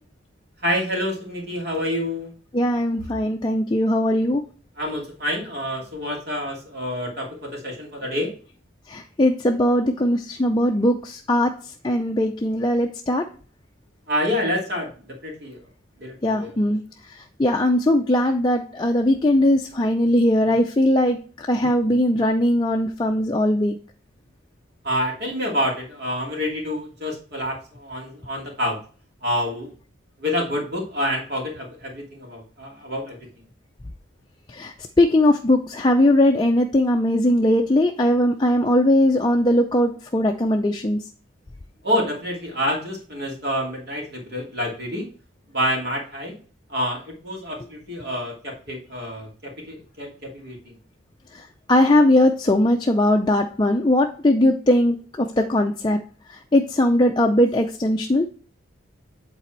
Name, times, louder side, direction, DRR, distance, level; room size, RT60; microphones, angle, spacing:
voice 1, 0.6-2.3 4.8-8.3 14.1-15.6 16.0-16.6 24.8-28.8 29.2-29.7 30.2-33.4 41.8-45.1 45.5-46.4 46.7-50.8, equal, 50° right, -1 dB, 2.7 m, -27 dB
voice 2, 2.5-4.4 8.9-11.5 11.8-13.2 16.2-16.8 17.4-23.8 34.5-41.0 51.7-56.0 56.5-58.3, left 1 dB, 20° left, 2 dB, 0.5 m, -19 dB
8.5 x 4.1 x 4.5 m, 0.40 s
head